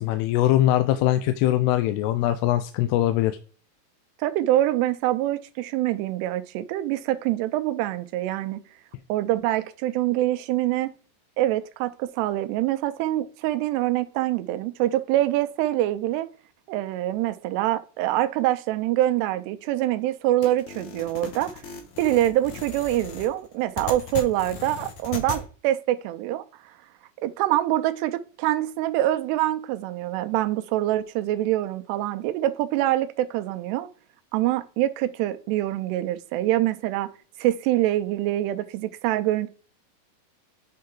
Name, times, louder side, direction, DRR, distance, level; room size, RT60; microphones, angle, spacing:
voice 1, 0.0-3.3, left 13 dB, 85° left, 2.6 m, -22 dB
voice 2, 4.2-8.6 9.1-10.9 11.4-16.3 16.7-21.5 22.0-26.4 27.2-33.9 34.3-37.1 37.4-39.5, right 14 dB, 85° right, 2.8 m, -25 dB
sound 1, 20.4-25.4, left 6 dB, 70° left, 1.9 m, -37 dB
8.6 x 5.4 x 3.7 m
omnidirectional pair, 4.7 m